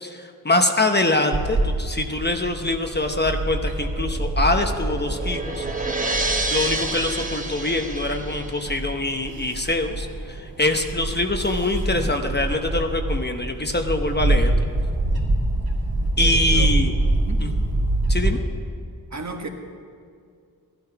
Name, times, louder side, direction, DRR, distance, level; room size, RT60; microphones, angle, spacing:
voice 1, 0.0-5.6 6.5-14.5 16.2-16.9 17.4-17.5 18.1-18.4, left 2 dB, 30° left, 5 dB, 0.9 m, -24 dB
Bird / Wind, 1.3-18.3, right 2 dB, 80° right, 2.8 m, -25 dB
sound 1, 3.9-8.8, right 2 dB, 20° right, 1.0 m, -29 dB
voice 2, 16.2-16.7 17.2-17.4 19.1-19.5, right 3 dB, 50° right, 4 dB, 1.5 m, -34 dB
15.0 x 12.0 x 5.8 m, 2.3 s
wide cardioid pair, 80°, 37 cm